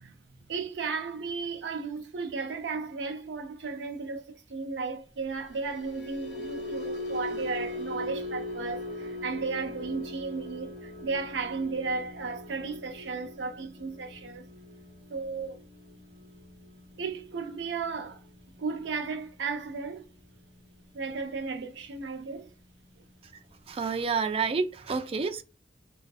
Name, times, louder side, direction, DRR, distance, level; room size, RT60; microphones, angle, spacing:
voice 1, 0.0-14.4 15.1-15.6 17.0-18.2 18.6-20.1 20.9-22.5, right 4 dB, 85° right, 0.5 m, -34 dB
sound 1, 5.4-21.8 22.1-22.4 22.7-23.0, left 2 dB, 45° left, 1.1 m, -41 dB
voice 2, 23.7-25.4, right 5 dB, 35° right, 0.3 m, -29 dB
2.5 x 2.3 x 2.4 m
head